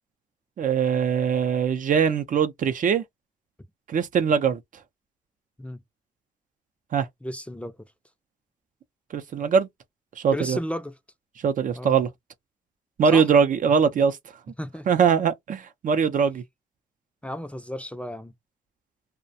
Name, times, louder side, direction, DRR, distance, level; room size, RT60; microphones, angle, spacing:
voice 1, 0.6-3.0 3.9-4.6 6.9-7.1 9.1-9.7 10.2-10.6 11.4-12.1 13.0-14.2 14.9-16.4, right 6 dB, 50° right, 0.5 m, -21 dB
voice 2, 7.2-7.8 10.3-10.9 11.8-12.0 13.1-13.3 14.6-14.9 17.2-18.3, equal, 5° left, 0.5 m, -33 dB
2.3 x 2.1 x 2.6 m
supercardioid pair, 65°, 17 cm